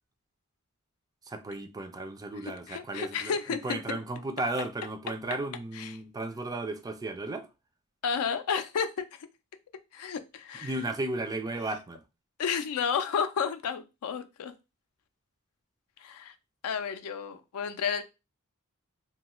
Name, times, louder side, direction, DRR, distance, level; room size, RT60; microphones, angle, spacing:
voice 1, 1.3-7.5 10.6-12.0, right 2 dB, 15° right, 0.3 m, -34 dB
voice 2, 2.4-4.0 5.8-6.0 8.0-9.1 9.9-10.7 12.4-14.5 16.0-16.3 16.6-18.0, left 6 dB, 75° left, 0.4 m, -32 dB
2.9 x 2.3 x 2.9 m
head